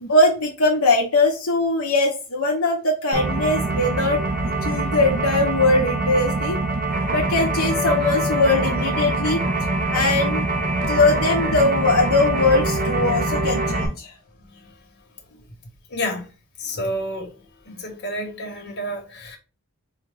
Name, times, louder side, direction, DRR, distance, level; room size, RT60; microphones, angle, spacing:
voice 1, 0.0-4.2 4.5-6.6 7.1-9.4 9.9-10.4 10.9-14.1, left 2 dB, 70° left, 0.8 m, -20 dB
sound 1, 3.1-13.9, right 2 dB, 40° right, 0.7 m, -24 dB
voice 2, 15.9-16.2 16.6-17.3 17.7-19.4, equal, 50° left, 1.2 m, -29 dB
4.8 x 2.3 x 3.4 m
head